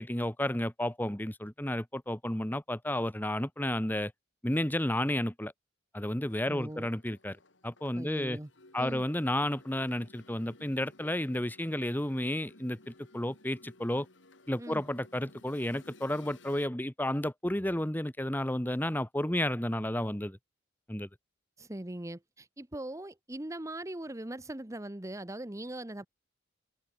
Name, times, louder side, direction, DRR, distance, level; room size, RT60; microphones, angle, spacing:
voice 1, 0.0-4.1 4.4-5.5 5.9-7.4 7.6-8.4 8.7-14.1 14.5-20.4 20.9-21.1, left 1 dB, 10° left, 1.4 m, -32 dB
sound 1, 6.0-16.7, left 2 dB, 70° left, 3.4 m, -58 dB
voice 2, 6.5-6.9 7.9-8.5 8.8-9.0 14.6-14.8 21.6-26.1, right 1 dB, 15° right, 1.0 m, -40 dB
head